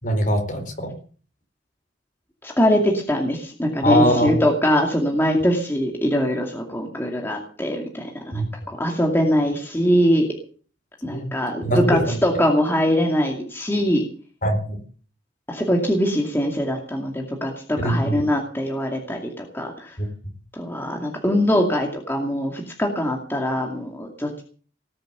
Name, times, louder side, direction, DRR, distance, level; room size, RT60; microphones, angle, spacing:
voice 1, 0.0-0.9 3.8-4.3 8.3-8.4 11.1-11.3 11.6-12.1 14.4-14.8 17.8-18.2 20.0-20.1, equal, 45° left, 5 dB, 4.5 m, -22 dB
voice 2, 2.4-10.3 11.0-14.0 15.5-20.0 20.5-24.4, equal, 10° left, 1 dB, 2.4 m, -22 dB
19.0 x 7.9 x 8.2 m, 0.43 s
head